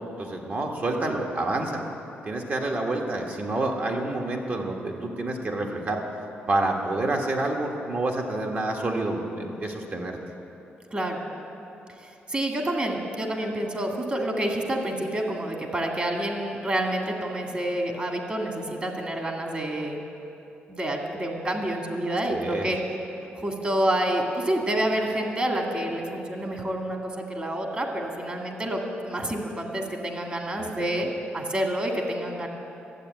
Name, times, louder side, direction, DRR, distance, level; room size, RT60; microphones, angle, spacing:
voice 1, 0.2-1.9 2.2-6.0 6.5-10.2 22.3-22.7 30.6-30.7, right 2 dB, 45° right, 1 dB, 1.7 m, -28 dB
voice 2, 12.0-20.0 20.7-22.8 23.4-28.8 29.1-32.5, right 1 dB, 30° right, 2 dB, 2.1 m, -28 dB
12.0 x 8.1 x 9.1 m, 2.9 s
cardioid pair, 85°, 4 cm